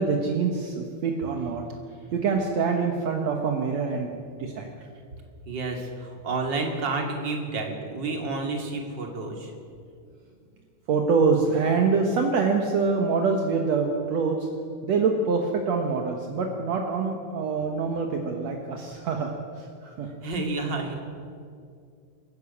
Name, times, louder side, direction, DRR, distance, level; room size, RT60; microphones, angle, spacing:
voice 1, 0.0-1.6 2.1-4.7 10.9-14.5 14.8-20.1, right 4 dB, 65° right, 2 dB, 2.5 m, -25 dB
voice 2, 5.5-9.5 20.2-20.9, right 3 dB, 35° right, 2 dB, 3.2 m, -30 dB
26.0 x 14.0 x 8.5 m, 2.3 s
omnidirectional pair, 3.4 m